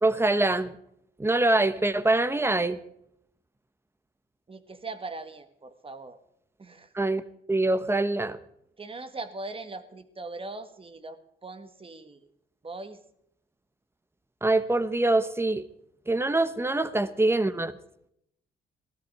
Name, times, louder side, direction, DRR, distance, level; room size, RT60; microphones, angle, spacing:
voice 1, 0.0-0.8 1.2-2.8 6.9-7.2 7.5-8.4 14.4-15.6 16.1-17.7, right 2 dB, 10° right, 13 dB, 1.1 m, -24 dB
voice 2, 4.5-6.2 6.6-6.9 8.8-12.3 12.6-13.0, right 3 dB, 30° right, 9 dB, 1.7 m, -40 dB
16.5 x 13.5 x 4.8 m, 0.74 s
cardioid pair, 90°, 20 cm